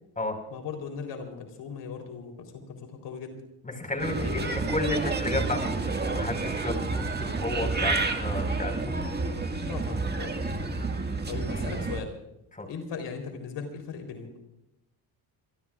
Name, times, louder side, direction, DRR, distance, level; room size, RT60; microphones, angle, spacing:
voice 1, 0.5-3.4 4.2-4.5 9.6-10.4 11.3-12.1 12.7-14.4, left 5 dB, 80° left, 4 dB, 3.9 m, -38 dB
voice 2, 3.6-9.1 12.5-12.7, left 2 dB, 20° left, 5 dB, 4.9 m, -32 dB
Bird, 4.0-12.0, right 3 dB, 25° right, 2.0 m, -29 dB
27.5 x 19.0 x 2.5 m, 0.87 s
cardioid pair, 95°, 41 cm